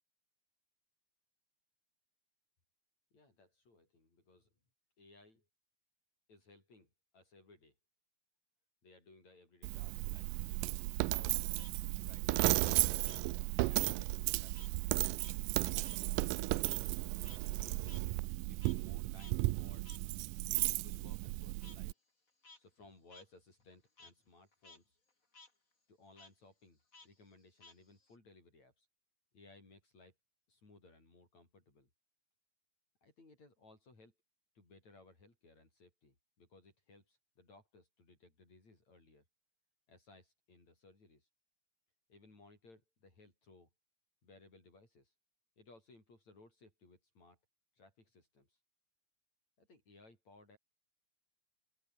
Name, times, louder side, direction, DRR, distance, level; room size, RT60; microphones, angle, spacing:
voice 1, 3.1-4.5 5.0-5.5 6.3-7.7 8.8-11.6 12.0-13.0 13.6-14.7 15.5-16.7 17.3-18.1 18.5-19.9 20.4-21.9 22.6-25.0 25.9-28.9 29.3-30.1 30.5-31.9 33.0-34.1 34.6-39.2 39.9-41.3 42.1-43.7 44.2-45.1 45.6-47.4 47.8-48.6 49.6-50.6, left 2 dB, 55° left, 9.0 m, -62 dB
Coin (dropping), 9.6-21.9, right 21 dB, 85° right, 2.2 m, -34 dB
Frog, 11.1-14.0 14.3-18.9 19.2-19.3 19.8-20.0 20.6-20.7 21.6-21.8 22.3-22.6 23.1-23.2 23.6-24.1 24.5-24.8 25.1-25.5 26.1-26.3 26.9-28.1, left 3 dB, 25° left, 3.9 m, -59 dB
open air
omnidirectional pair, 3.9 m